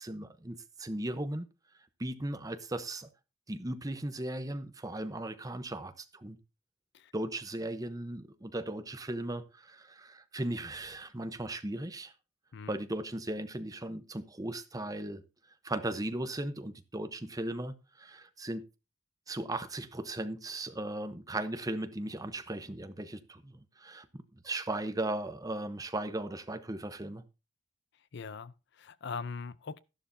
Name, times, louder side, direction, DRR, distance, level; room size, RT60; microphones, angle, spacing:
voice 1, 0.0-1.5 2.0-3.1 3.5-6.4 7.1-12.1 12.7-15.2 15.6-18.6 19.3-27.2, right 1 dB, 20° right, 0.9 m, -37 dB
voice 2, 28.1-29.8, left 5 dB, 60° left, 0.5 m, -41 dB
13.0 x 11.5 x 2.7 m
head